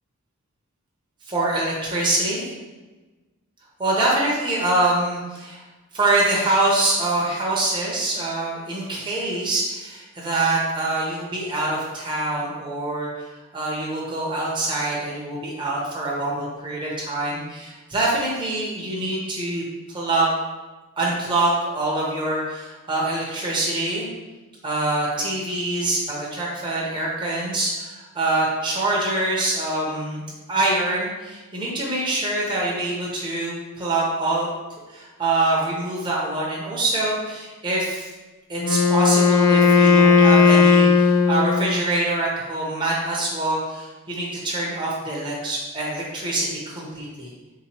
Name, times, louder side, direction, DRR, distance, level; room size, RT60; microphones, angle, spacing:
voice 1, 1.3-2.5 3.8-5.6 5.9-13.3 13.5-19.6 19.9-20.3 21.0-24.1 24.6-30.2 30.5-34.5 34.9-38.1 38.5-47.3, right 2 dB, 20° right, -4 dB, 0.6 m, -25 dB
Wind instrument woodwind instrument, 38.6-41.9, left 5 dB, 90° left, 0.4 m, -16 dB
3.8 x 2.9 x 2.8 m, 1.2 s
head